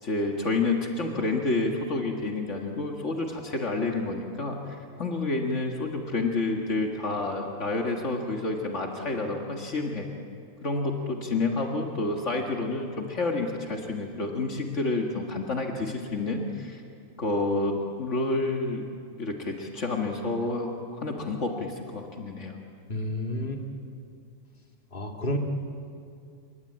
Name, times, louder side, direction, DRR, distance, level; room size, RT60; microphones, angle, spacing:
voice 1, 0.0-10.1 10.6-16.8 17.2-18.8 19.2-22.6, left 3 dB, 65° left, 1 dB, 2.1 m, -29 dB
voice 2, 22.9-23.6 24.9-25.4, left 1 dB, 40° left, 2 dB, 2.4 m, -30 dB
27.5 x 23.0 x 8.7 m, 2.4 s
omnidirectional pair, 1.3 m